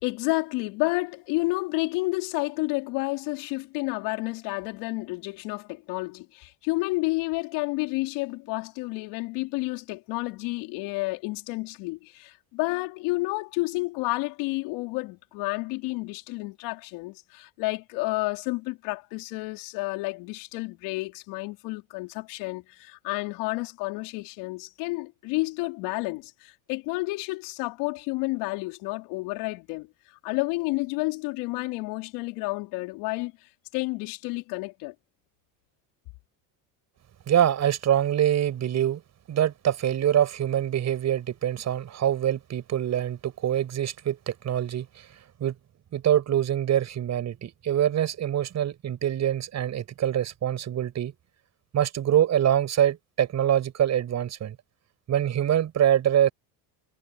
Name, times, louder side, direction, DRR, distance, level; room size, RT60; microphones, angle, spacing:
voice 1, 0.0-29.9 30.2-33.3 33.7-34.9, left 24 dB, 80° left, 4.6 m, -30 dB
voice 2, 37.3-39.0 39.3-45.1 45.4-45.5 45.9-51.1 51.7-54.6 55.1-56.3, right 10 dB, 40° right, 7.3 m, -24 dB
cardioid pair, 130°, 40 cm